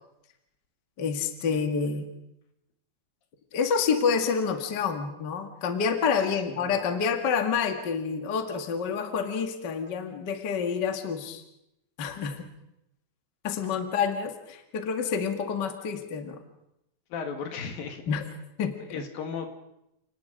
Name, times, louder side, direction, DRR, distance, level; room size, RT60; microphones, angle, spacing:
voice 1, 1.0-2.1 3.5-11.4 12.0-12.5 13.4-16.4 18.1-18.3 18.6-18.8, left 6 dB, 40° left, 6 dB, 1.8 m, -28 dB
voice 2, 17.1-18.0 18.9-19.5, left 6 dB, 75° left, 5 dB, 3.7 m, -35 dB
29.5 x 19.0 x 5.2 m, 0.83 s
omnidirectional pair, 4.2 m